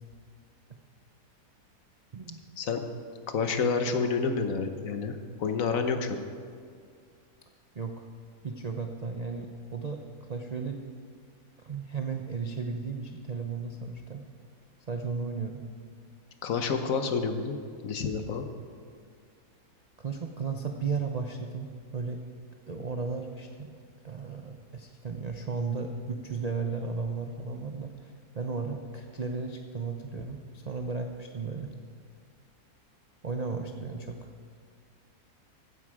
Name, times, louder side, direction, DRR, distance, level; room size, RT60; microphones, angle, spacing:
voice 1, 3.3-6.2 16.4-17.6 17.8-18.5, left 5 dB, 60° left, 7 dB, 1.3 m, -29 dB
voice 2, 7.7-8.1 8.4-10.8 11.6-14.2 14.9-15.6 20.0-22.2 22.7-23.7 24.0-31.7 33.2-34.3, right 4 dB, 55° right, 4 dB, 0.4 m, -35 dB
15.0 x 9.6 x 4.9 m, 2.1 s
omnidirectional pair, 1.7 m